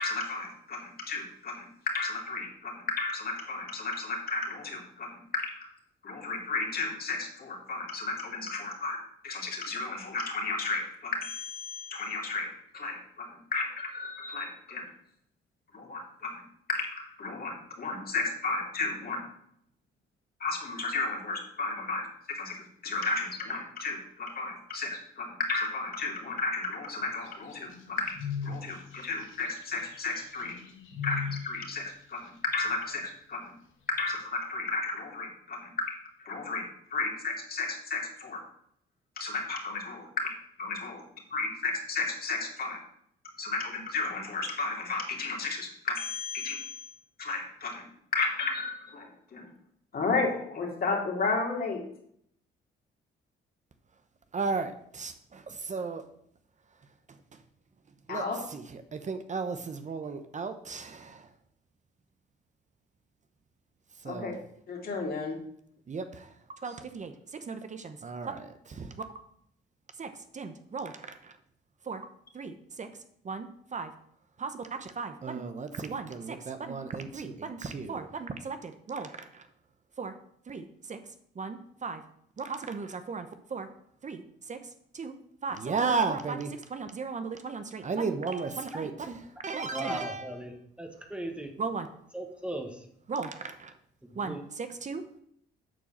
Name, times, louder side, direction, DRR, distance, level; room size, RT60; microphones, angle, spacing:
voice 1, 0.0-5.7 6.0-9.0 9.2-14.8 15.7-16.4 16.7-19.2 20.4-28.1 28.4-30.5 31.0-33.5 33.9-35.9 36.2-38.4 39.2-40.3 40.6-41.0 41.3-42.8 43.4-46.8 47.2-47.8 48.1-49.5 49.9-51.8 58.1-58.4 64.0-64.3 64.7-65.4, left 3 dB, 50° left, 0 dB, 2.8 m, -33 dB
sound 1, 27.2-31.5, left 7 dB, 85° left, 2.0 m, -37 dB
voice 2, 54.3-56.0 58.1-61.3 64.0-64.3 65.9-66.3 66.6-68.9 70.0-71.3 71.9-72.0 72.3-72.9 73.2-73.9 74.4-79.4 80.0-80.1 80.5-81.0 81.4-82.0 82.4-83.7 84.0-84.6 84.9-85.1 85.4-89.2 89.4-90.3 91.6-91.9 93.1-93.7 94.2-95.2, right 4 dB, 35° right, 8 dB, 1.0 m, -35 dB
voice 3, 89.6-91.5 92.1-92.9 94.1-94.4, right 1 dB, 5° right, 3 dB, 1.5 m, -38 dB
9.2 x 4.6 x 7.4 m, 0.69 s
cardioid pair, 90°, 20 cm